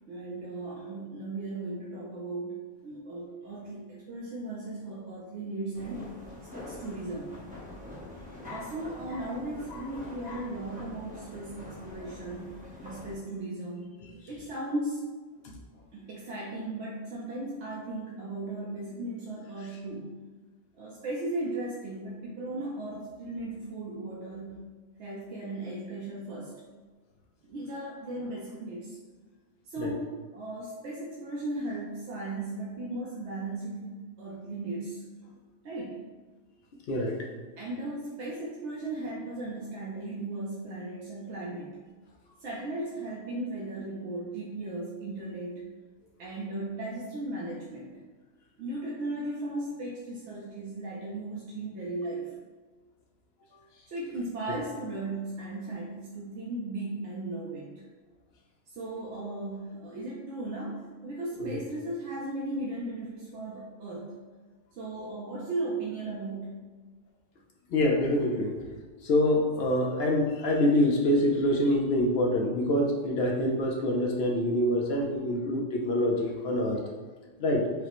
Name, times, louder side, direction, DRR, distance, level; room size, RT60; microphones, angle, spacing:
voice 1, 0.1-6.2 6.5-7.3 8.5-13.9 14.3-15.0 15.9-20.2 20.8-24.7 25.0-26.6 27.5-29.0 29.7-35.0 35.6-36.0 37.6-41.8 42.4-45.7 46.2-48.0 48.6-52.3 53.9-57.7 58.8-64.2 64.8-66.7, right 2 dB, 65° right, -5 dB, 0.8 m, -36 dB
sound 1, 5.7-13.2, left 1 dB, 10° right, 0.5 m, -45 dB
voice 2, 67.7-68.6 69.0-76.8 77.4-77.6, left 1 dB, 65° left, 0 dB, 0.7 m, -26 dB
4.8 x 2.1 x 2.9 m, 1.4 s
omnidirectional pair, 1.3 m